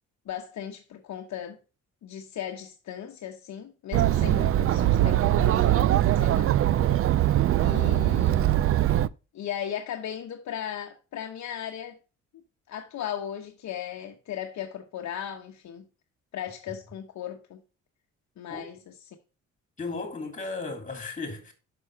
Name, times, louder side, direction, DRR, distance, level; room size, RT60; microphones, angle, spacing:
voice 1, 0.3-1.6 2.0-6.6 7.3-8.6 9.3-12.0 12.3-12.4 12.7-15.8 16.3-17.6 18.4-18.9, left 9 dB, 65° left, 1.1 m, -37 dB
Chatter, 3.9-9.1, right 13 dB, 50° right, 0.4 m, -22 dB
voice 2, 19.8-21.5, left 3 dB, 25° left, 2.8 m, -35 dB
6.1 x 5.6 x 4.7 m
cardioid pair, 90°, 30 cm